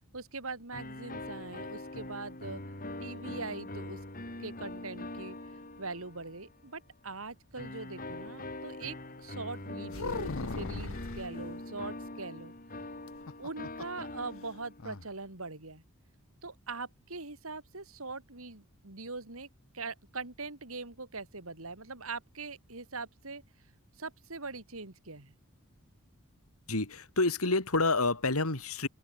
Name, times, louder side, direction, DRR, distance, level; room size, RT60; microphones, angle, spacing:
voice 1, 0.1-2.6 3.0-4.0 4.4-5.4 5.8-12.5 13.4-15.8 16.4-19.5 19.7-23.4 24.0-25.3, right 3 dB, 70° right, 3.5 m, -42 dB
sound 1, 0.7-6.5 7.6-15.0, left 1 dB, 40° left, 7.2 m, -43 dB
sound 2, 9.9-11.3 13.1-14.0 14.3-14.4 14.8-15.1, left 3 dB, 65° left, 1.0 m, -38 dB
voice 2, 26.7-28.9, left 3 dB, 85° left, 3.4 m, -28 dB
open air
head